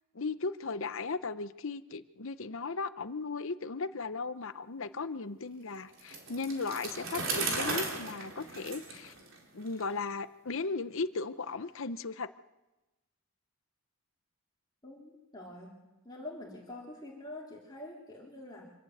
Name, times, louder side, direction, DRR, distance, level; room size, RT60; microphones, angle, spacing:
voice 1, 0.1-9.1 9.5-12.3, left 4 dB, 65° left, 13 dB, 0.8 m, -36 dB
Bicycle, 6.0-9.8, right 3 dB, 60° right, 4.2 m, -36 dB
voice 2, 14.8-15.8 16.0-18.7, left 1 dB, 20° left, -5 dB, 3.6 m, -46 dB
26.0 x 12.5 x 8.0 m, 1.0 s
head